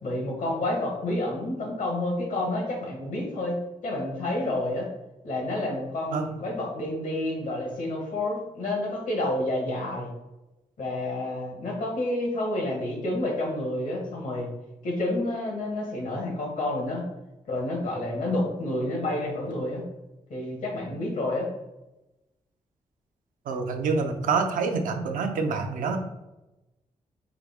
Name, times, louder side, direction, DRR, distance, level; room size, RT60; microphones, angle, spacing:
voice 1, 0.0-4.9 5.2-10.1 10.8-14.5 14.8-17.1 17.5-19.8 20.3-21.5, left 1 dB, 75° left, 0 dB, 1.3 m, -29 dB
voice 2, 23.5-26.0, right 4 dB, 85° right, 4 dB, 0.5 m, -26 dB
4.7 x 2.0 x 3.5 m, 1.0 s
cardioid pair, 60°, 14 cm